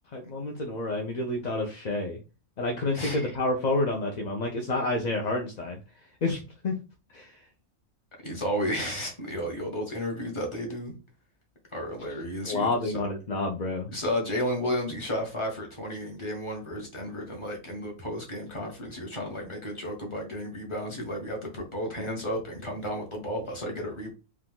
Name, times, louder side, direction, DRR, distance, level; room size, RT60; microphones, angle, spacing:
voice 1, 0.1-2.2 2.6-5.8 6.2-6.4 6.6-6.8 7.1-7.3 12.5-13.9, left 2 dB, 45° left, 1 dB, 0.6 m, -29 dB
voice 2, 2.9-3.3 8.2-10.9 11.7-13.0 13.9-24.1, equal, 20° left, 0 dB, 1.4 m, -33 dB
4.6 x 2.5 x 3.7 m, 0.31 s
omnidirectional pair, 1.4 m